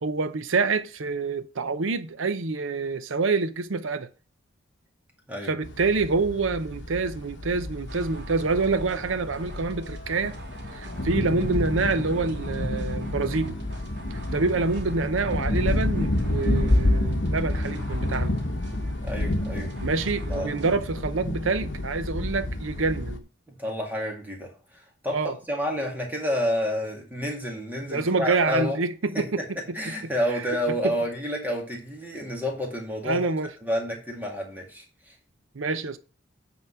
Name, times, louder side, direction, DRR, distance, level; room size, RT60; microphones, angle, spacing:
voice 1, 0.0-4.1 5.4-10.4 10.7-13.6 14.1-18.3 19.8-23.2 25.1-25.4 27.9-29.4 29.7-30.1 30.8-30.9 33.0-33.5 35.5-36.0, right 4 dB, 85° right, 0.7 m, -27 dB
sound 1, 5.6-23.2, left 1 dB, 65° left, 1.0 m, -29 dB
sound 2, 7.9-20.8, right 1 dB, 60° right, 2.2 m, -46 dB
voice 2, 19.0-19.7 20.3-20.5 23.6-28.8 29.1-29.5 29.7-33.3 33.6-35.1, equal, 10° right, 2.1 m, -29 dB
9.2 x 4.0 x 5.7 m
head